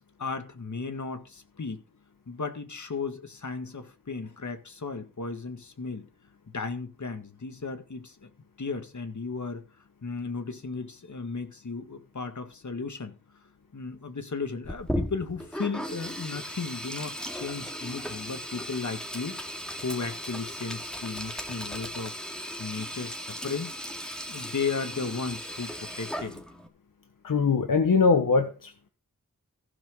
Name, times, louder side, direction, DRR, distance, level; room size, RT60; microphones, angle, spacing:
voice 1, 0.2-1.8 2.3-6.1 6.5-8.3 8.6-9.6 10.0-13.2 13.7-19.4 19.8-23.7 24.3-26.4, left 4 dB, 60° left, 1.9 m, -35 dB
Sink (filling or washing), 14.6-26.7, equal, ahead, 2.3 m, -36 dB
voice 2, 27.2-28.9, left 4 dB, 75° left, 1.1 m, -22 dB
15.0 x 6.0 x 5.3 m
wide cardioid pair, 60°, 33 cm